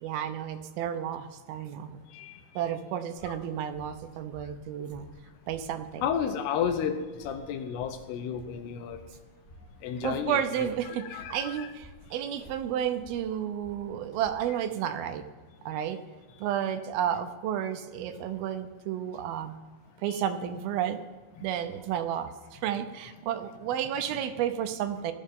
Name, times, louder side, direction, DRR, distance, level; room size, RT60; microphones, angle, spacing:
voice 1, 0.0-2.0 2.6-5.1 5.5-6.0 10.0-15.2 15.7-16.0 16.4-19.6 20.0-21.0 21.4-25.1, right 9 dB, 75° right, 8 dB, 2.5 m, -32 dB
sound 1, 3.2-14.5, equal, 5° left, 1.9 m, -54 dB
voice 2, 6.0-9.0 9.8-11.7 20.1-20.2 21.4-21.5, left 7 dB, 90° left, 8 dB, 3.0 m, -32 dB
19.0 x 13.0 x 3.7 m, 1.3 s
omnidirectional pair, 4.6 m